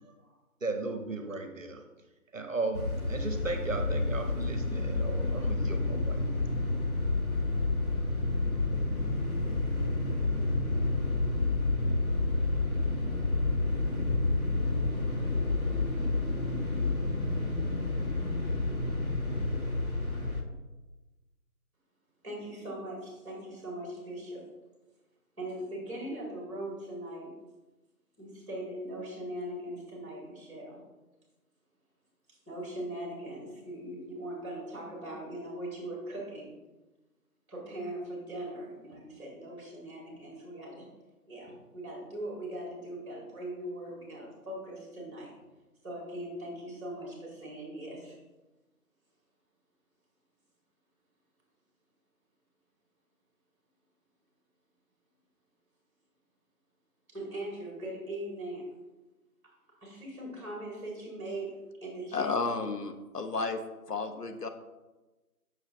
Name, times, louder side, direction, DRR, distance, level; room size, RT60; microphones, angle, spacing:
voice 1, 0.6-1.8 2.3-6.2, right 3 dB, 55° right, 6 dB, 1.0 m, -35 dB
sound 1, 2.7-20.4, left 2 dB, 65° left, 1.9 m, -29 dB
voice 2, 22.2-24.4 25.4-27.3 28.2-30.8 32.3-36.5 37.5-40.9 41.3-45.3 45.8-48.2 57.1-58.6 59.8-61.5 61.8-62.3, right 1 dB, 20° right, -3 dB, 2.3 m, -40 dB
voice 3, 62.1-63.6 63.9-64.5, left 4 dB, 85° left, 7 dB, 1.0 m, -32 dB
7.7 x 6.6 x 3.0 m, 1.1 s
figure-of-eight pair, 165°, 46 cm